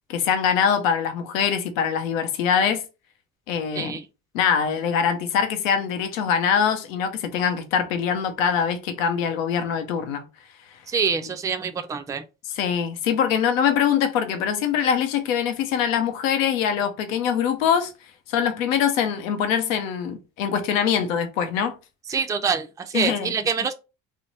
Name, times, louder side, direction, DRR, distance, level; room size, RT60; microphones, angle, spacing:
voice 1, 0.1-2.8 3.5-3.9 4.3-10.2 12.5-17.9 18.3-21.7 22.9-23.3, left 7 dB, 90° left, 0.7 m, -23 dB
voice 2, 10.9-12.2 22.1-23.7, right 6 dB, 10° right, 0.4 m, -25 dB
3.1 x 2.1 x 4.0 m
hypercardioid pair, 60°, 39 cm